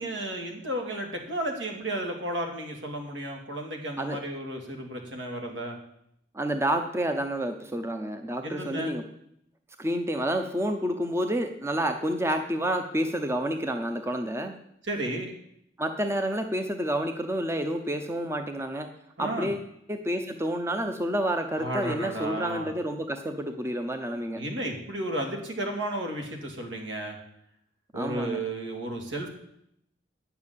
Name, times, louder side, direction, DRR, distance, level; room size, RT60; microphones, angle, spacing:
voice 1, 0.0-5.8 8.4-8.9 14.8-15.3 19.2-19.5 21.6-22.7 24.3-27.2 27.9-29.3, right 1 dB, 70° right, 2 dB, 2.6 m, -33 dB
voice 2, 6.3-9.0 9.8-14.6 15.8-18.9 19.2-24.4 27.9-28.4, right 1 dB, 15° right, 6 dB, 0.7 m, -29 dB
9.6 x 7.0 x 8.4 m, 0.74 s
head